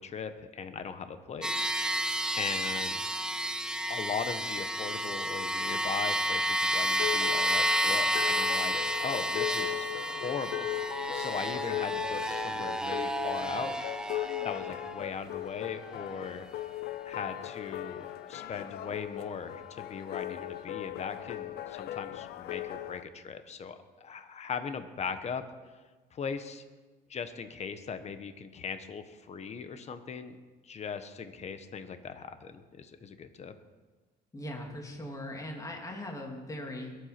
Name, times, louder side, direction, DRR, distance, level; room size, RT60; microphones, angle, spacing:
voice 1, 0.0-2.0 2.3-3.0 3.9-8.7 9.0-10.7 11.1-13.8 14.4-16.5 17.1-25.4 26.1-26.6 27.1-30.3 30.6-33.5, left 6 dB, 40° left, 10 dB, 1.3 m, -39 dB
sound 1, 1.4-15.0, equal, 5° right, 0.9 m, -31 dB
sound 2, 6.9-23.0, left 14 dB, 70° left, 0.8 m, -38 dB
voice 2, 34.3-37.0, left 1 dB, 20° left, 1 dB, 2.8 m, -40 dB
21.5 x 8.3 x 6.0 m, 1.3 s
cardioid pair, 110°, 17 cm